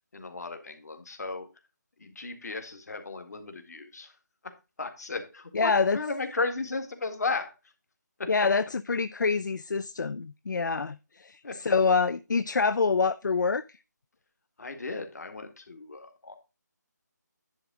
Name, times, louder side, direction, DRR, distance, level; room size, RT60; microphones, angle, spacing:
voice 1, 0.1-1.5 2.0-4.2 4.8-7.5 8.2-8.3 11.4-11.8 14.6-16.4, left 3 dB, 60° left, 1.9 m, -35 dB
voice 2, 5.5-6.0 8.3-13.8, left 4 dB, 80° left, 0.5 m, -26 dB
10.5 x 3.7 x 6.1 m
figure-of-eight pair, 165°, 10 cm